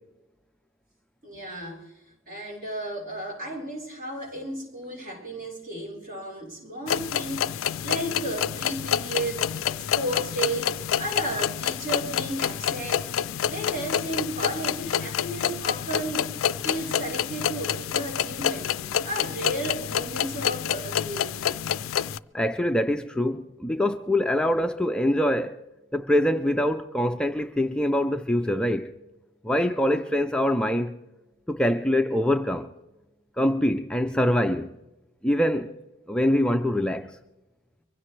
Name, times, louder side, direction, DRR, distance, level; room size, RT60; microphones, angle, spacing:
voice 1, 1.2-1.9 2.3-9.7 9.9-13.1 13.4-16.3 16.6-18.8 19.0-21.4, right 1 dB, 45° right, 4.2 m, -33 dB
sound 1, 6.9-22.2, left 9 dB, 85° left, 0.4 m, -28 dB
voice 2, 22.3-25.5 25.9-28.9 29.4-30.9 31.5-32.7 33.4-34.7 35.2-35.7 36.1-37.2, left 1 dB, 5° left, 0.4 m, -24 dB
23.5 x 16.0 x 3.2 m
head